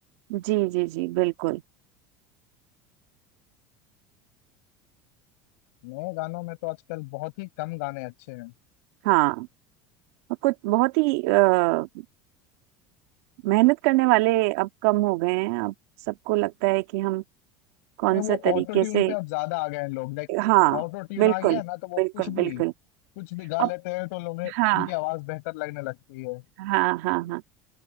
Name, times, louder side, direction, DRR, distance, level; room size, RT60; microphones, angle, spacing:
voice 1, 0.3-1.6 9.0-9.5 10.4-11.9 13.4-15.7 16.1-17.2 18.0-19.1 20.3-20.8 21.2-21.6 22.0-22.7 23.6-23.7 24.6-24.9 26.6-27.4, right 21 dB, 70° right, 2.0 m, -23 dB
voice 2, 5.8-8.5 18.1-20.3 20.7-22.7 23.2-26.4, left 25 dB, 75° left, 7.5 m, -32 dB
open air
cardioid pair, 160°, 8 cm